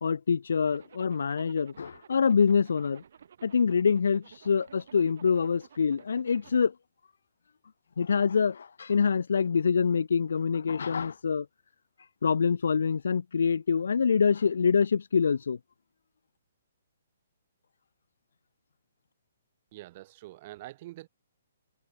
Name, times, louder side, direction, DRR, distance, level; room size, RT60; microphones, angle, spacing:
voice 1, 0.0-3.0 3.4-6.7 8.0-11.5 12.2-15.6, left 6 dB, 75° left, 1.0 m, -25 dB
Zipper (clothing), 0.7-6.7, right 8 dB, 65° right, 6.9 m, -54 dB
voice 2, 19.7-21.1, right 17 dB, 40° right, 3.2 m, -45 dB
hypercardioid pair, 140°, 0 cm